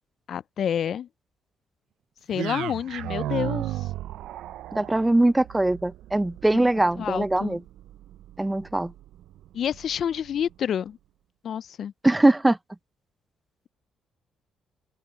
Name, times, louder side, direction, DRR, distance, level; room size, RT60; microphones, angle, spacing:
voice 1, 0.3-1.1 2.3-3.9 6.5-6.7 7.0-7.6 9.5-11.0 11.4-11.9, left 9 dB, 60° left, 0.3 m, -29 dB
sound 1, 2.3-10.5, right 13 dB, 85° right, 0.4 m, -36 dB
voice 2, 4.7-7.6 8.4-8.9 12.0-12.6, right 2 dB, 10° right, 0.5 m, -21 dB
open air
cardioid pair, 90°, 0 cm